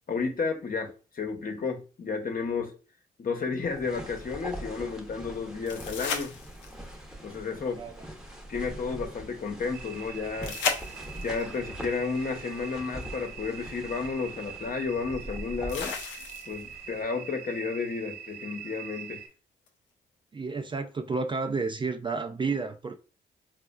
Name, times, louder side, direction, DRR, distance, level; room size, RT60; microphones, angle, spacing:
voice 1, 0.1-2.7 3.2-6.4 7.2-7.8 8.5-10.6 11.2-16.0 16.5-19.2, left 4 dB, 50° left, 0.9 m, -32 dB
sound 1, 3.6-17.0, right 1 dB, 5° right, 0.8 m, -43 dB
sound 2, 5.7-6.9 10.4-11.4 13.3-13.4 15.7-16.7 19.7-19.8, left 5 dB, 85° left, 0.5 m, -33 dB
sound 3, 9.7-19.3, right 8 dB, 80° right, 0.9 m, -44 dB
voice 2, 20.3-23.0, right 4 dB, 25° right, 0.4 m, -31 dB
4.0 x 2.4 x 2.3 m
supercardioid pair, 45°, 19 cm